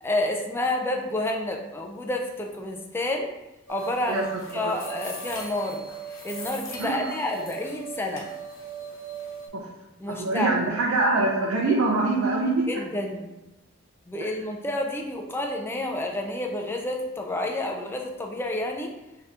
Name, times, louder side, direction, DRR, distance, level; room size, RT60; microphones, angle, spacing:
voice 1, 0.0-3.3 3.7-4.3 4.5-8.3 10.0-10.6 12.7-13.3 14.1-18.9, left 1 dB, 10° left, 2 dB, 0.3 m, -29 dB
sound 1, 3.7-9.5, right 4 dB, 80° left, 0.9 m, -38 dB
voice 2, 10.1-12.7 14.2-14.3, right 2 dB, 90° right, -2 dB, 0.6 m, -24 dB
3.6 x 2.8 x 3.4 m, 0.96 s
head